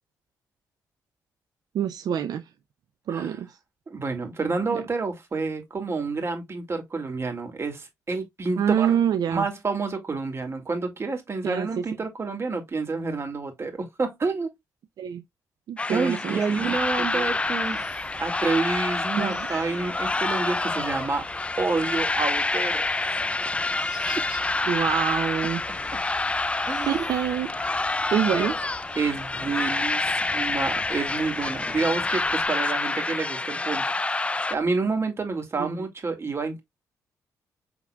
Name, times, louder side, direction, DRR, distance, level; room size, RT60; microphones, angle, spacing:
voice 1, 1.7-2.5 3.1-3.6 4.7-4.8 8.6-9.5 11.4-11.8 15.0-15.2 15.7-16.7 17.1-17.4 19.2-19.5 24.7-25.6 26.9-28.6 35.6-35.7, right 9 dB, 70° right, 0.5 m, -26 dB
voice 2, 3.9-9.0 9.3-14.5 15.9-17.9 18.2-21.3 21.6-23.1 26.7-27.0 29.0-33.9 34.5-36.6, right 4 dB, 40° right, 2.1 m, -29 dB
sound 1, 15.8-34.5, left 2 dB, 15° left, 0.3 m, -27 dB
Chicken rooster, 16.6-32.5, equal, 10° right, 2.7 m, -46 dB
6.0 x 3.7 x 2.3 m
supercardioid pair, 60°, 7 cm